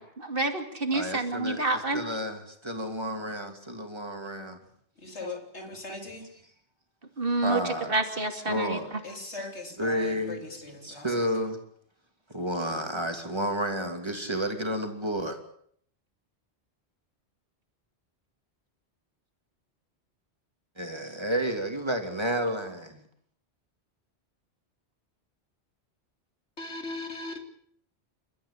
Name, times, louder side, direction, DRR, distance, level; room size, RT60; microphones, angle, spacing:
voice 1, 0.0-2.0 7.2-8.8, right 2 dB, 55° right, 2.8 m, -28 dB
voice 2, 0.9-4.6 5.1-6.3 7.4-8.0 8.5-11.6 12.3-15.4 20.8-23.0, equal, 25° right, 2.9 m, -32 dB
voice 3, 5.0-6.3 9.0-10.4 10.6-11.0 26.6-27.4, left 3 dB, 80° left, 3.4 m, -39 dB
29.5 x 13.5 x 8.5 m
omnidirectional pair, 1.1 m